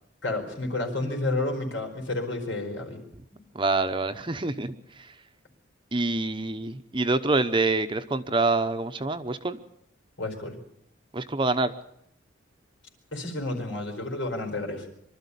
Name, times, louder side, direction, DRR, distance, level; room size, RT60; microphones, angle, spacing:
voice 1, 0.2-3.0 3.3-3.4 10.2-10.6 13.1-14.9, left 2 dB, 80° left, 4 dB, 4.8 m, -30 dB
voice 2, 3.5-5.1 5.9-9.6 11.1-11.7, right 3 dB, 25° right, 10 dB, 0.9 m, -26 dB
24.0 x 13.0 x 8.4 m, 0.76 s
head